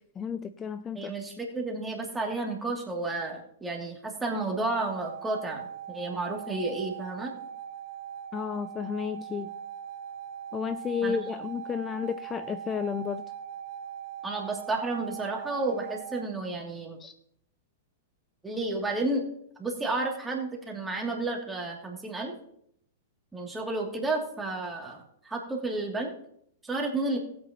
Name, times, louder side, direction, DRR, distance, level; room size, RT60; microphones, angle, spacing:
voice 1, 0.2-1.1 8.3-9.5 10.5-13.2 17.0-17.1, left 7 dB, 20° left, 12 dB, 0.4 m, -32 dB
voice 2, 0.9-7.3 11.0-11.2 14.2-17.0 18.4-19.2 19.6-22.3 23.3-26.1 26.6-27.2, right 2 dB, 10° right, -1 dB, 2.6 m, -31 dB
sound 1, 4.6-16.3, right 9 dB, 55° right, 0.9 m, -41 dB
19.0 x 8.5 x 3.0 m, 0.73 s
figure-of-eight pair, 105°, 0 cm